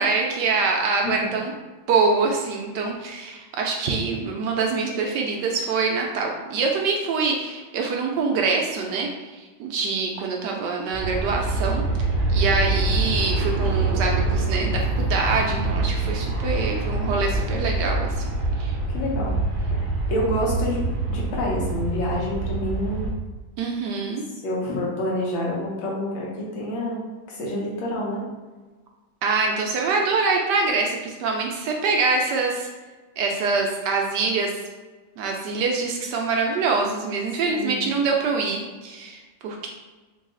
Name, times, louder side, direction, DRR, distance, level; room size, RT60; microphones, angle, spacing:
voice 1, 0.0-1.5 1.9-11.8 12.3-18.3 18.6-18.8 23.6-24.2 29.2-32.7 33.2-34.5 35.2-39.7, right 4 dB, 75° right, 0 dB, 1.1 m, -25 dB
voice 2, 1.0-1.3 18.9-19.4 19.7-19.8 20.1-20.8 21.1-23.1 24.4-27.0 27.3-28.2 37.4-37.9, left 1 dB, 85° left, -4 dB, 1.8 m, -27 dB
Aircraft, 10.9-23.1, right 2 dB, 45° right, 0.7 m, -25 dB
3.9 x 2.3 x 3.7 m, 1.3 s
omnidirectional pair, 2.1 m